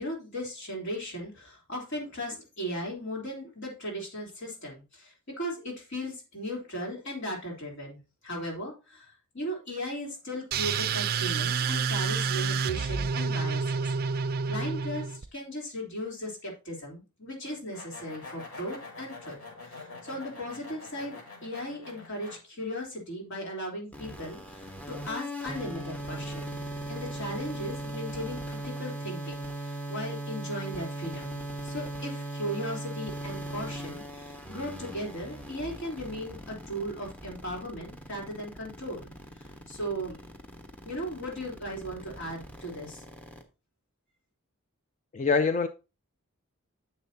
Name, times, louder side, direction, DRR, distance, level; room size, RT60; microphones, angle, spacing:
voice 1, 0.0-13.8 14.1-19.4 19.7-26.6 26.9-40.2 40.8-43.0, equal, 55° left, 3.5 m, -37 dB
sound 1, 10.5-15.3, right 5 dB, 45° right, 0.4 m, -29 dB
sound 2, 17.4-22.4, left 3 dB, 90° left, 5.2 m, -45 dB
sound 3, 23.9-43.4, right 1 dB, 5° left, 1.1 m, -39 dB
voice 2, 45.1-45.7, left 4 dB, 35° left, 0.4 m, -24 dB
10.5 x 7.0 x 2.8 m
head